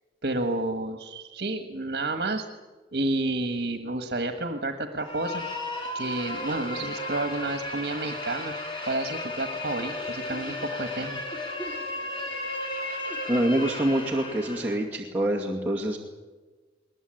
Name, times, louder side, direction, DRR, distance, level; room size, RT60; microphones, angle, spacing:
voice 1, 0.2-2.5 2.9-5.4 5.9-8.5 8.9-11.2, right 2 dB, 65° right, 6 dB, 1.5 m, -30 dB
sound 1, 5.0-14.8, left 2 dB, 25° left, 3.5 m, -34 dB
voice 2, 13.3-16.0, right 1 dB, 10° right, -4 dB, 2.3 m, -26 dB
21.0 x 20.5 x 8.9 m, 1.3 s
head